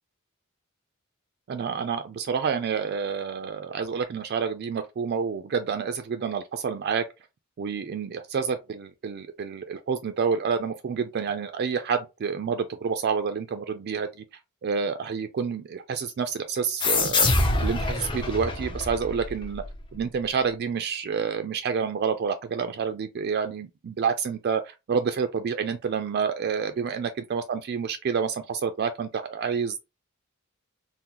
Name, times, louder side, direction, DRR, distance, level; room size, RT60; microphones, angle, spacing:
voice 1, 1.5-7.0 7.6-14.2 14.6-17.3 17.6-19.6 19.9-29.8, right 6 dB, 50° right, 0.3 m, -28 dB
sound 1, 16.8-20.0, left 3 dB, 25° left, 0.5 m, -26 dB
3.7 x 2.0 x 2.9 m
head